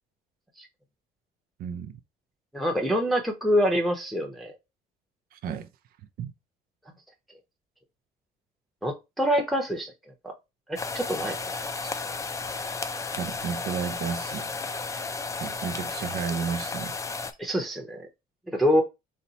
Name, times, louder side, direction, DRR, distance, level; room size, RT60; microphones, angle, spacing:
voice 1, 1.6-2.0 5.3-5.7 6.2-6.3 13.2-14.5 15.3-17.0, right 7 dB, 60° right, 0.5 m, -32 dB
voice 2, 2.5-4.5 8.8-9.9 10.2-10.3 10.7-11.4 17.4-18.1 18.5-18.8, equal, ahead, 0.8 m, -25 dB
sound 1, 10.8-17.3, left 4 dB, 20° left, 0.4 m, -33 dB
4.3 x 2.1 x 4.0 m
cardioid pair, 110°, 17 cm